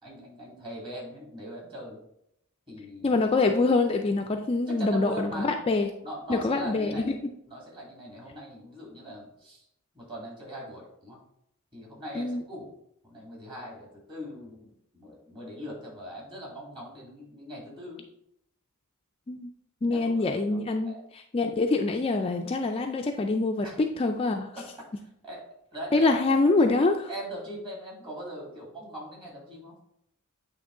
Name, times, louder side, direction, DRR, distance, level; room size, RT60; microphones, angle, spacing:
voice 1, 0.0-2.0 2.7-3.2 4.7-5.5 6.0-7.2 7.5-9.6 9.9-11.2 11.7-12.7 13.0-18.0 19.9-21.0 23.6-23.8 24.6-24.9 25.2-25.4 25.7-26.2 27.1-29.7, right 1 dB, 25° right, -3 dB, 2.1 m, -41 dB
voice 2, 3.0-5.9 6.3-7.2 12.2-12.4 19.3-19.5 19.8-24.5 25.9-27.0, left 3 dB, 25° left, 4 dB, 0.3 m, -25 dB
8.7 x 3.0 x 3.7 m, 0.76 s
head